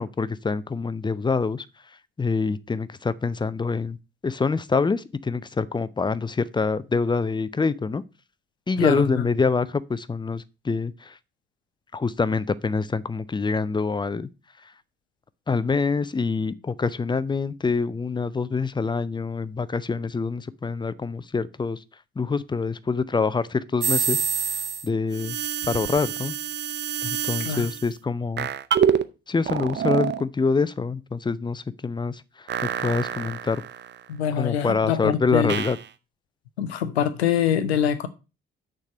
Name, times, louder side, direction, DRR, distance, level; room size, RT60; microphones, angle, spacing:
voice 1, 0.0-1.7 2.2-4.0 4.2-8.0 8.7-11.2 11.9-14.3 15.5-21.8 22.2-25.4 25.7-26.4 27.0-28.5 29.3-32.5 32.8-33.6 34.4-35.8, left 4 dB, 15° left, 0.5 m, -26 dB
voice 2, 8.8-9.3 27.4-27.7 34.1-35.5 36.6-38.1, left 9 dB, 80° left, 0.7 m, -24 dB
sound 1, 23.8-24.9 25.1-27.9 28.4-29.1 29.4-30.2 32.5-34.0 35.5-35.8, right 8 dB, 35° right, 0.6 m, -27 dB
6.6 x 4.7 x 6.5 m
figure-of-eight pair, 40°, 32 cm